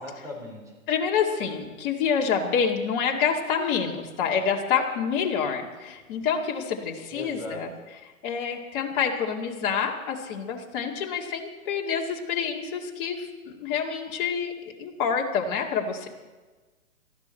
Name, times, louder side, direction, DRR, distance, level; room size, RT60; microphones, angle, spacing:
voice 1, 0.0-0.7 7.1-7.7, left 1 dB, 10° right, -2 dB, 4.5 m, -38 dB
voice 2, 0.9-7.7 8.2-14.5 14.8-16.1, left 6 dB, 40° left, 0 dB, 2.3 m, -27 dB
19.0 x 13.5 x 4.5 m, 1.3 s
hypercardioid pair, 125°, 41 cm